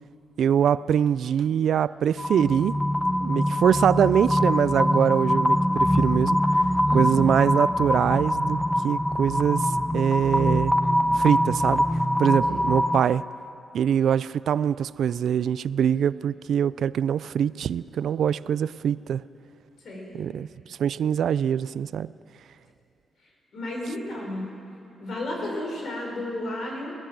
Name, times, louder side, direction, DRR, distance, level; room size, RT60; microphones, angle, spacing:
voice 1, 0.4-2.8 3.2-6.4 6.9-10.7 11.1-11.8 12.2-13.2 13.7-19.2 20.2-22.1, right 8 dB, 70° right, 18 dB, 0.4 m, -23 dB
sound 1, 2.2-13.0, equal, 5° left, 0.7 m, -23 dB
voice 2, 6.9-7.2 12.5-12.7 19.8-20.2 23.5-24.5 25.0-26.9, left 1 dB, 60° left, -1 dB, 5.4 m, -33 dB
22.0 x 18.5 x 7.5 m, 2.8 s
cardioid pair, 135°, 0 cm